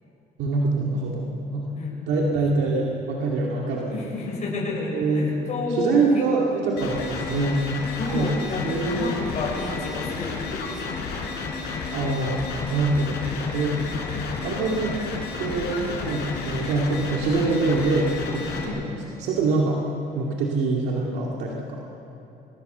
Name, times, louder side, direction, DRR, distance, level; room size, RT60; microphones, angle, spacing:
voice 1, 0.4-1.7 2.0-4.1 4.9-5.3 5.7-7.6 8.1-8.3 8.6-9.1 11.9-12.4 12.7-13.2 13.5-13.8 14.4-14.9 15.4-19.8 20.1-21.8, right 3 dB, 85° right, -2 dB, 2.4 m, -24 dB
voice 2, 1.7-2.2 3.9-6.2 6.8-6.9 8.0-11.0 13.8-14.1 18.6-18.9, left 3 dB, 45° left, -3 dB, 6.0 m, -31 dB
sound 1, 6.8-18.6, left 4 dB, 80° left, 4.5 m, -31 dB
23.5 x 21.5 x 6.9 m, 2.9 s
cardioid pair, 110°, 17 cm